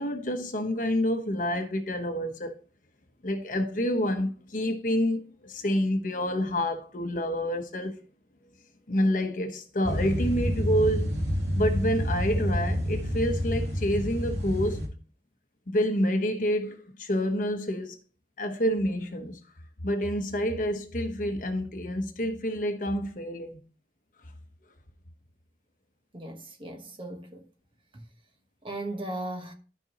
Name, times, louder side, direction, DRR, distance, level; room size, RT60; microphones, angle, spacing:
voice 1, 0.0-2.6 3.2-8.0 8.9-11.1 11.6-14.9 15.7-18.0 18.4-19.4 19.8-23.6, equal, 50° left, 1.1 m, -28 dB
sound 1, 9.8-14.9, equal, 80° right, 2.4 m, -28 dB
voice 2, 26.1-27.5 27.9-28.1 28.6-29.5, right 1 dB, 30° right, 1.3 m, -37 dB
12.5 x 5.3 x 3.0 m
head